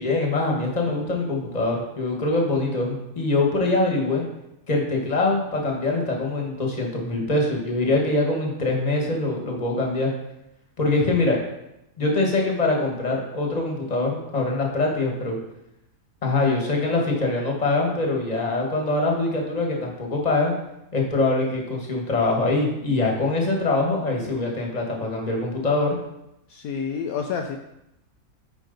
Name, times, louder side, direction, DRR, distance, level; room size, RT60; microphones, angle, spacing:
voice 1, 0.0-4.2 4.7-10.1 10.8-11.4 12.0-15.4 16.2-20.5 20.9-26.0, left 2 dB, 25° left, 0 dB, 1.4 m, -23 dB
voice 2, 26.5-27.6, left 6 dB, 70° left, 3 dB, 1.0 m, -29 dB
9.1 x 4.8 x 3.9 m, 0.86 s
omnidirectional pair, 1.6 m